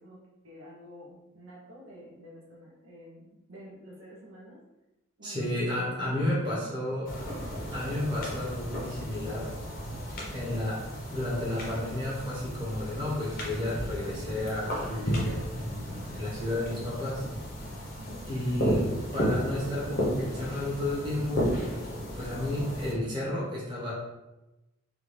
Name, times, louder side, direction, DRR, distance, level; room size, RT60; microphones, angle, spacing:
voice 1, 0.0-4.6 5.2-7.1 18.0-18.2, equal, 75° right, -3 dB, 0.8 m, -49 dB
voice 2, 5.2-7.2 7.7-9.5 10.3-10.8 11.1-17.2 18.3-21.5 22.1-23.9, left 1 dB, 20° right, -7 dB, 1.1 m, -32 dB
sound 1, 7.1-22.9, equal, 45° left, 0.7 m, -34 dB
3.5 x 2.4 x 3.1 m, 0.99 s
head